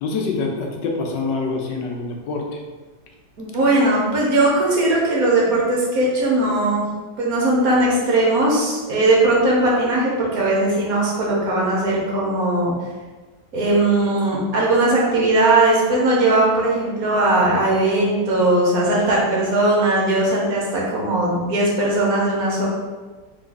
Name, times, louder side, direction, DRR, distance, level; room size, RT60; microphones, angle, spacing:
voice 1, 0.0-2.6, left 4 dB, 80° left, 1 dB, 1.3 m, -25 dB
voice 2, 3.4-6.9 7.2-12.7 13.5-22.7, right 2 dB, 55° right, -4 dB, 1.3 m, -19 dB
3.6 x 3.3 x 3.8 m, 1.3 s
omnidirectional pair, 1.9 m